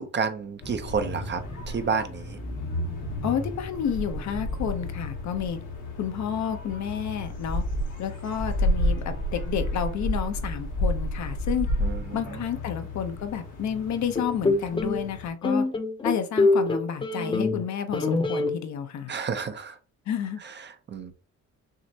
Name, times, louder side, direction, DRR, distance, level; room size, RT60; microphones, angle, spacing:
voice 1, 0.0-2.4 11.8-12.5 19.1-19.8 20.4-21.1, right 5 dB, 35° right, 9 dB, 0.6 m, -31 dB
sound 1, 0.6-15.3, left 1 dB, 85° left, 1.5 m, -31 dB
voice 2, 3.2-5.6 6.0-7.6 8.0-11.7 12.1-15.7 16.0-19.1 20.1-20.4, left 8 dB, 65° left, 8 dB, 0.8 m, -30 dB
sound 2, 14.2-15.0 15.4-17.6 17.9-18.5, left 3 dB, 15° left, 0.6 m, -24 dB
6.3 x 2.1 x 2.7 m, 0.39 s
cardioid pair, 90°, 30 cm